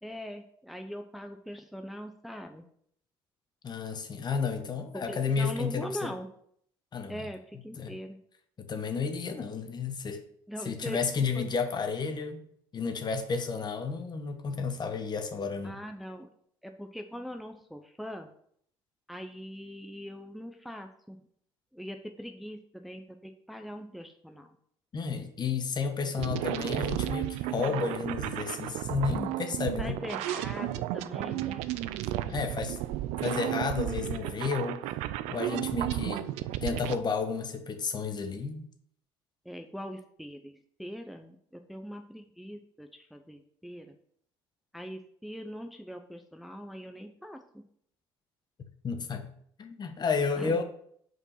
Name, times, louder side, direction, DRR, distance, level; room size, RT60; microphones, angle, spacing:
voice 1, 0.0-2.6 5.1-6.3 7.1-8.2 10.5-11.0 11.3-11.4 15.6-16.3 16.6-18.3 19.1-21.2 21.7-24.6 29.8-31.6 39.4-43.9 44.7-47.6 50.4-50.6, equal, ahead, 5 dB, 0.7 m, -41 dB
voice 2, 3.6-6.1 6.9-7.2 7.8-7.9 8.6-10.2 10.6-12.5 12.7-15.8 24.9-30.0 32.3-32.8 33.2-34.9 35.3-36.2 36.6-38.6 48.8-49.3 49.6-50.6, left 5 dB, 40° left, 6 dB, 1.2 m, -32 dB
sound 1, 26.2-37.0, right 14 dB, 80° right, 0.4 m, -33 dB
5.4 x 4.7 x 5.6 m, 0.65 s
supercardioid pair, 75°, 11 cm